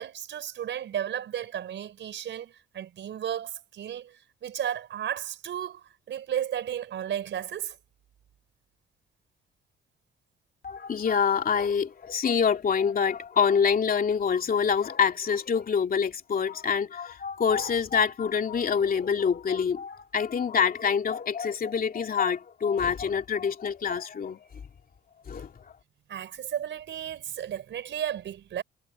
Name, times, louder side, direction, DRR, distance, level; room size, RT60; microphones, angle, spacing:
voice 1, 0.0-7.8 26.1-28.6, right 10 dB, 65° right, 5.3 m, -34 dB
voice 2, 10.6-24.4 25.3-25.5, left 6 dB, 45° left, 2.9 m, -26 dB
cardioid pair, 90°, 20 cm